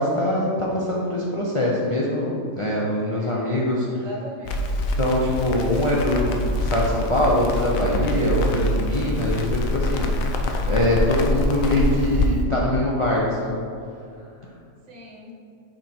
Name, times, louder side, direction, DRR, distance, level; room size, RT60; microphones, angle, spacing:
voice 1, 0.0-3.9 5.0-10.1 10.7-13.6, left 1 dB, 40° left, -5 dB, 0.4 m, -23 dB
voice 2, 3.2-4.8 14.9-15.3, equal, 65° right, -2 dB, 1.4 m, -39 dB
Crackle, 4.4-12.3, left 1 dB, 75° left, 1.0 m, -25 dB
5.7 x 4.2 x 4.3 m, 2.5 s
omnidirectional pair, 1.5 m